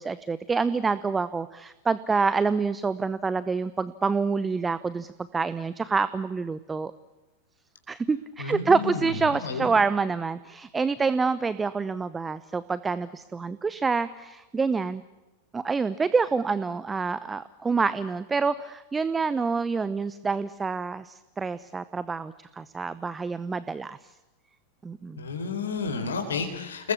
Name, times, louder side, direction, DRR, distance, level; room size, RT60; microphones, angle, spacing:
voice 1, 0.0-6.9 7.9-15.0 15.5-24.0 24.8-25.3, right 4 dB, 15° right, 16 dB, 0.8 m, -27 dB
voice 2, 8.4-9.7 25.2-26.9, left 5 dB, 70° left, 5 dB, 4.1 m, -31 dB
29.5 x 20.5 x 8.6 m, 1.1 s
figure-of-eight pair, 90°, 0 cm